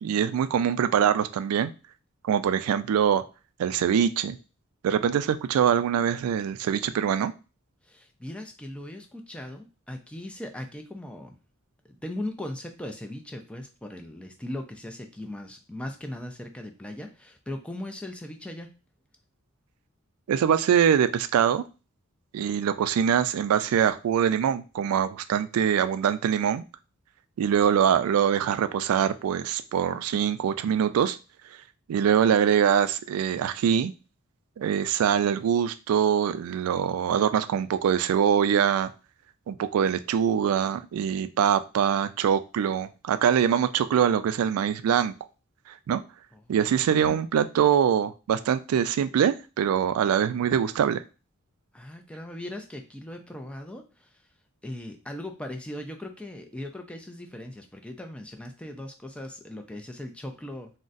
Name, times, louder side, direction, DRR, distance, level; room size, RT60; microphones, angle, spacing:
voice 1, 0.0-1.7 2.2-3.2 3.6-4.4 4.8-7.3 20.3-21.6 22.3-26.6 27.4-31.2 31.9-33.9 34.6-38.9 39.5-45.1 45.7-46.0 46.5-51.0, right 8 dB, 85° right, 15 dB, 0.3 m, -23 dB
voice 2, 7.8-11.3 11.9-18.7 46.3-47.2 51.7-54.2 54.6-60.7, left 1 dB, 5° left, 4 dB, 0.3 m, -39 dB
3.8 x 2.1 x 2.5 m, 0.32 s
head